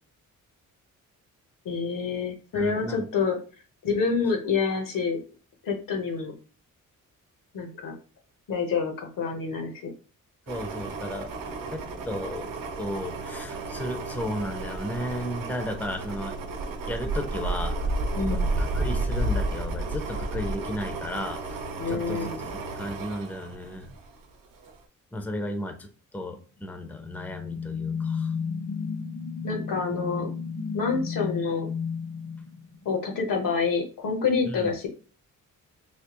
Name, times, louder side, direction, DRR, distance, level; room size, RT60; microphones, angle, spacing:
voice 1, 1.6-3.4 3.8-5.2 5.6-6.3 7.5-8.0 8.5-9.7 18.1-18.5 21.8-22.4 29.4-30.3 30.7-31.7 32.8-34.9, left 5 dB, 75° left, 3 dB, 1.0 m, -27 dB
voice 2, 2.5-3.1 10.5-11.3 11.7-12.5 12.8-16.3 16.9-17.9 18.3-21.6 21.9-22.3 22.8-23.9 25.1-28.3 34.4-34.7, equal, 5° left, 6 dB, 0.5 m, -34 dB
sound 1, 10.5-24.2 24.6-24.7, right 2 dB, 75° right, 0.8 m, -32 dB
sound 2, 26.7-33.2, left 6 dB, 50° left, 0.7 m, -33 dB
3.4 x 2.8 x 2.9 m, 0.37 s
cardioid pair, 105°, 33 cm